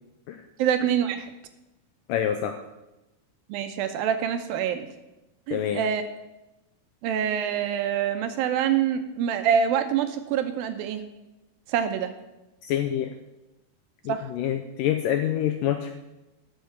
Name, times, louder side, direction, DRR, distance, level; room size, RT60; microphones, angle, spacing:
voice 1, 0.6-1.3 3.5-4.9 5.5-6.0 7.0-11.0 11.7-12.1 14.1-14.3, right 8 dB, 75° right, 8 dB, 2.4 m, -25 dB
voice 2, 2.1-2.6 5.5-5.8 12.6-13.1 14.1-15.9, left 10 dB, 85° left, 6 dB, 1.9 m, -26 dB
12.5 x 6.6 x 7.1 m, 0.99 s
omnidirectional pair, 4.5 m